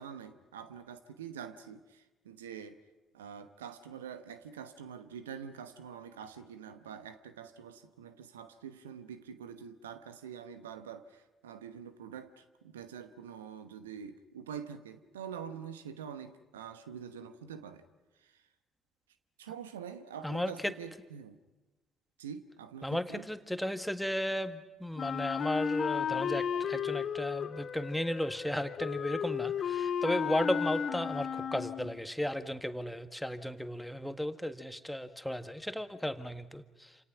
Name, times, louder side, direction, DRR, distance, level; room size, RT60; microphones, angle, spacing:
voice 1, 0.0-2.8 3.1-17.8 18.2-18.3 19.4-21.4 22.2-23.3, right 7 dB, 80° right, 11 dB, 1.0 m, -45 dB
voice 2, 20.2-20.7 22.8-37.0, left 1 dB, 5° left, 9 dB, 1.6 m, -35 dB
Wind instrument woodwind instrument, 25.0-32.0, left 7 dB, 50° left, 1.8 m, -34 dB
28.5 x 27.5 x 6.0 m, 1.1 s
figure-of-eight pair, 50°, 0 cm